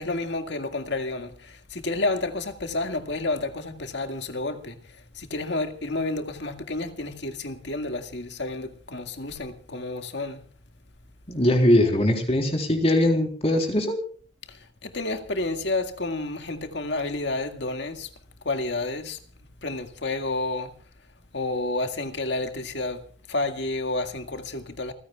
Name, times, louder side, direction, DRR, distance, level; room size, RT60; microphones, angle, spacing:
voice 1, 0.0-4.8 5.1-10.4 14.5-18.1 18.4-19.2 19.6-20.7 21.3-23.0 23.3-24.9, left 2 dB, 60° left, 2.0 m, -30 dB
voice 2, 11.3-14.0, left 1 dB, 30° left, 3.7 m, -21 dB
29.0 x 15.5 x 2.4 m
head